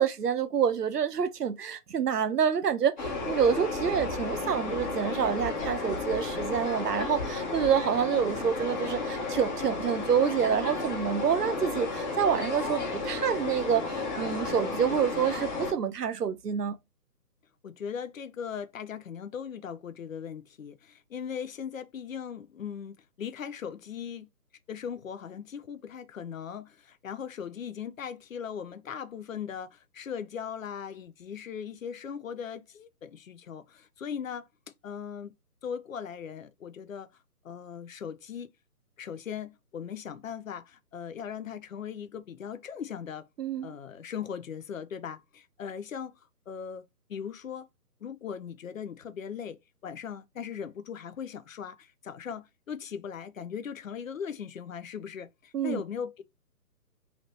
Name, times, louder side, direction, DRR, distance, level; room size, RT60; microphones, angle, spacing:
voice 1, 0.0-16.7 43.4-43.7 55.5-55.8, right 7 dB, 75° right, 0.8 m, -27 dB
sound 1, 3.0-15.7, left 3 dB, 30° left, 1.0 m, -33 dB
voice 2, 17.6-24.3 24.7-34.5 34.8-35.3 35.6-37.1 37.4-38.5 39.0-43.3 43.6-46.1 46.5-47.7 48.0-56.2, left 7 dB, 55° left, 0.6 m, -39 dB
2.9 x 2.8 x 3.2 m
figure-of-eight pair, 160°, 48 cm